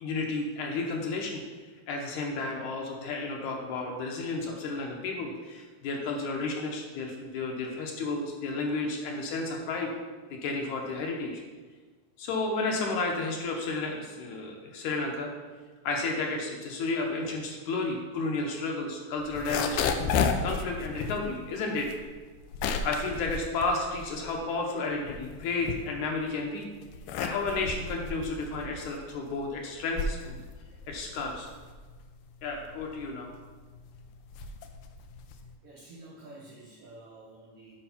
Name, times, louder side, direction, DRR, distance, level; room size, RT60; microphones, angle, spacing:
voice 1, 0.0-1.4 1.9-9.9 10.4-11.4 12.2-15.3 15.8-21.9 22.6-26.7 27.2-30.4 30.9-31.5 32.4-33.3, left 3 dB, 70° left, 1 dB, 2.2 m, -32 dB
sound 1, 19.2-24.5 24.9-26.3 26.8-35.6, left 5 dB, 90° left, 2.1 m, -33 dB
voice 2, 35.6-37.7, right 2 dB, 70° right, -4 dB, 1.4 m, -49 dB
6.9 x 4.4 x 5.8 m, 1.4 s
omnidirectional pair, 3.7 m